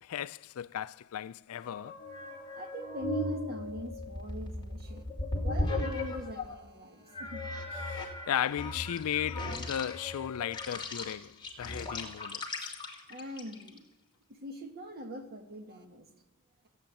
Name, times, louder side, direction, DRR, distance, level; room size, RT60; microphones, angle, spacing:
voice 1, 0.0-2.0 7.9-12.8, left 10 dB, 70° left, 0.4 m, -36 dB
sound 1, 1.6-6.6 7.1-13.8, left 2 dB, 20° left, 2.4 m, -37 dB
voice 2, 2.6-5.1 5.4-7.5 13.1-13.9 14.3-16.1, equal, 45° right, 1.7 m, -42 dB
15.0 x 7.9 x 9.0 m
head